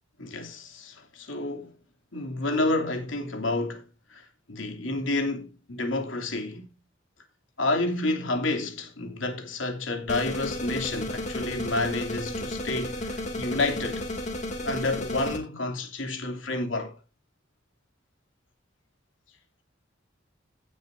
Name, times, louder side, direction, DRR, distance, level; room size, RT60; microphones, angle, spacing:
voice 1, 0.2-1.7 2.1-6.7 7.6-14.0 14.6-17.0, left 2 dB, 90° left, 2.9 m, -30 dB
sound 1, 10.1-15.4, left 1 dB, 35° left, 2.8 m, -33 dB
16.5 x 7.6 x 2.7 m
head